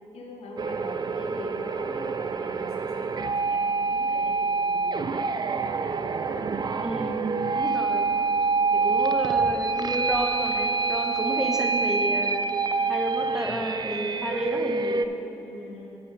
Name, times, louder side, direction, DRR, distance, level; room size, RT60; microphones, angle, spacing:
voice 1, 0.1-5.4 8.5-8.9 11.3-11.4 15.4-15.9, left 2 dB, 75° left, -1 dB, 1.2 m, -41 dB
sound 1, 0.6-15.1, right 4 dB, 40° right, 0.4 m, -26 dB
voice 2, 6.8-7.3 7.5-8.1 8.7-12.5 12.9-15.1, equal, 5° right, 1 dB, 1.2 m, -31 dB
7.8 x 6.9 x 4.9 m, 2.9 s
supercardioid pair, 45°, 10 cm